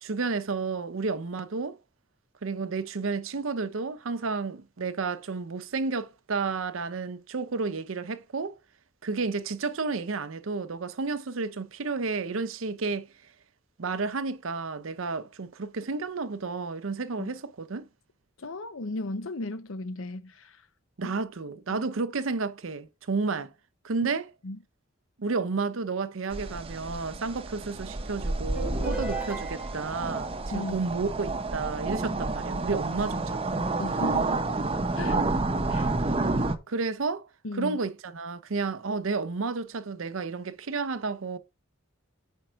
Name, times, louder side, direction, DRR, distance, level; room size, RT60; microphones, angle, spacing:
voice 1, 0.0-1.8 2.4-8.6 9.0-13.1 13.8-17.9 21.0-23.5 23.8-24.3 25.2-33.6 36.7-37.3 37.5-41.4, right 4 dB, 80° right, 0.7 m, -31 dB
voice 2, 18.4-20.5 21.0-21.2 21.7-21.9 24.0-24.1 24.4-24.6 30.5-30.8 33.8-34.5 34.9-35.2 35.7-35.9 37.4-37.8, left 2 dB, 80° left, 0.8 m, -35 dB
sound 1, 26.3-36.6, right 2 dB, 30° right, 0.8 m, -30 dB
sound 2, 28.5-30.0, right 2 dB, 5° right, 1.5 m, -36 dB
5.2 x 4.5 x 6.2 m
head